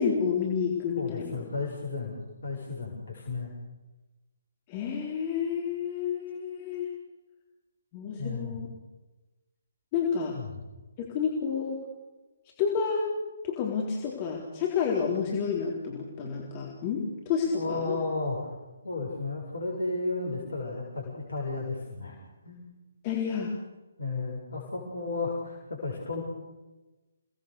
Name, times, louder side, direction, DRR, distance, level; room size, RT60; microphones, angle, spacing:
voice 1, 0.0-1.4 4.7-6.9 7.9-8.7 9.9-10.4 11.0-11.8 12.6-13.1 13.4-18.0 23.0-23.5, left 6 dB, 30° left, -1 dB, 3.9 m, -30 dB
voice 2, 1.0-3.5 8.2-8.6 10.3-10.7 17.5-18.5 18.8-22.2 22.4-22.6 24.0-26.2, left 3 dB, 60° left, -1 dB, 7.0 m, -33 dB
29.5 x 19.0 x 6.9 m, 1.2 s
figure-of-eight pair, 140°, 0 cm